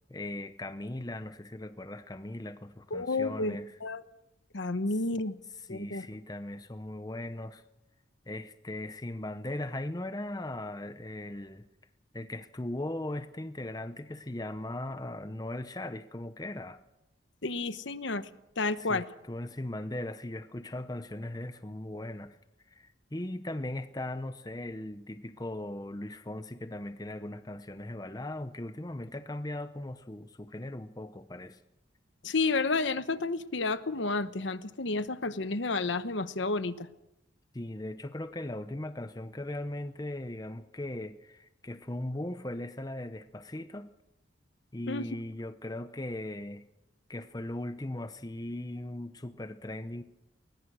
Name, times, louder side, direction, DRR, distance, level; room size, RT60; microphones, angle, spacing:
voice 1, 0.1-3.8 5.6-7.6 8.3-11.7 12.1-16.8 18.8-22.4 22.7-31.6 37.5-43.9 44.7-46.7 47.1-50.0, left 1 dB, 20° left, 0.7 m, -38 dB
voice 2, 2.9-4.0 4.5-5.3 5.7-6.1 17.4-18.3 18.6-19.0 32.2-36.9 44.9-45.1, left 3 dB, 70° left, 1.0 m, -31 dB
21.5 x 20.0 x 6.3 m
head